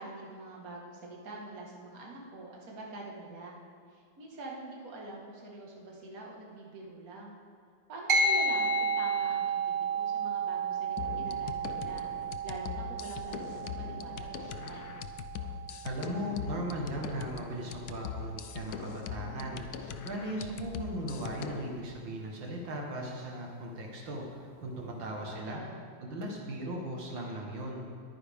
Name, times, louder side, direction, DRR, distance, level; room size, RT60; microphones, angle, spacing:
voice 1, 0.0-3.6 3.9-7.3 7.9-12.1 12.4-14.9 24.8-25.8, right 2 dB, 50° right, -2 dB, 2.1 m, -45 dB
sound 1, 8.1-17.8, right 3 dB, 30° right, 1.3 m, -33 dB
sound 2, 11.0-21.7, left 8 dB, 70° left, 1.0 m, -41 dB
voice 2, 15.8-19.6 20.0-25.6 26.0-27.8, right 1 dB, 75° right, -1 dB, 2.2 m, -38 dB
21.5 x 9.4 x 3.6 m, 2.1 s
omnidirectional pair, 2.1 m